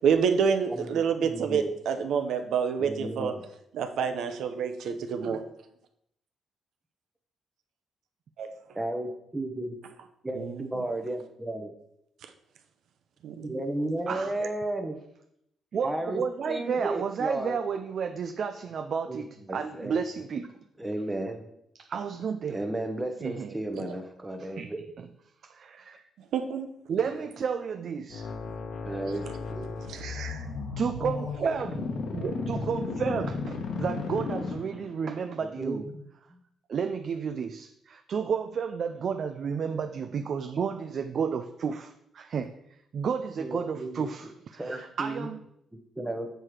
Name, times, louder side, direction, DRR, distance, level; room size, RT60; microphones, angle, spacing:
voice 1, 0.0-3.3 3.7-5.4 8.4-8.5 10.4-10.6 13.2-13.6 23.7-23.8 26.3-26.7 29.9-30.4, right 6 dB, 70° right, 7 dB, 0.8 m, -28 dB
voice 2, 1.2-1.7 2.8-3.4 4.1-4.2 8.7-9.8 10.2-11.7 13.4-15.0 15.8-16.2 16.5-17.6 19.1-20.0 20.8-21.4 22.5-24.8 26.9-27.2 28.8-29.8 35.4-36.0 36.3-36.4 43.4-44.1 44.6-45.3 46.0-46.3, right 1 dB, 10° right, 5 dB, 0.9 m, -34 dB
voice 3, 15.7-20.5 21.8-22.6 23.2-23.5 24.6-24.7 25.4-26.0 26.9-28.3 30.8-35.8 36.7-42.5 42.9-45.4, right 6 dB, 45° right, 8 dB, 0.4 m, -32 dB
sound 1, 28.1-35.0, left 4 dB, 65° left, 1.2 m, -34 dB
7.6 x 4.6 x 4.9 m, 0.76 s
cardioid pair, 150°, 0 cm